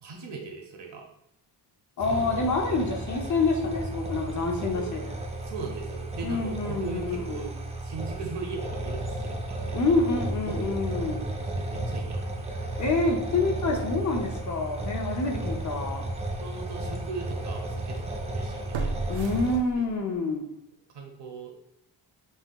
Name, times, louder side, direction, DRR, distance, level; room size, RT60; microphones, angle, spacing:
voice 1, 0.0-1.0 2.1-2.3 4.7-4.9 5.5-7.5 7.8-9.9 10.4-10.8 11.1-11.3 11.5-12.5 16.4-19.4 19.7-19.8 20.9-21.5, right 4 dB, 65° right, 2 dB, 1.0 m, -39 dB
voice 2, 2.0-5.1 6.2-7.5 9.7-11.3 12.8-16.0 19.1-20.5, left 3 dB, 40° left, 2 dB, 0.6 m, -27 dB
sound 1, 2.0-19.6, right 1 dB, 15° right, 0.4 m, -34 dB
sound 2, 15.4-15.6 16.1-16.2 18.7-20.2 20.5-20.6, right 4 dB, 80° right, 0.6 m, -34 dB
5.5 x 2.9 x 2.3 m, 0.77 s
wide cardioid pair, 150°, 44 cm